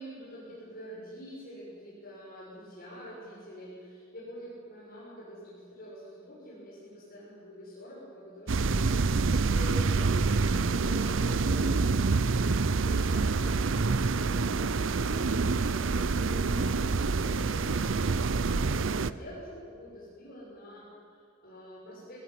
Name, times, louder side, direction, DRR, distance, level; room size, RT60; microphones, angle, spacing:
voice 1, 0.0-12.0 12.8-22.2, equal, 50° left, -6 dB, 7.0 m, -46 dB
sound 1, 8.5-19.1, right 4 dB, 75° right, 0.7 m, -27 dB
23.0 x 16.0 x 9.6 m, 2.4 s
head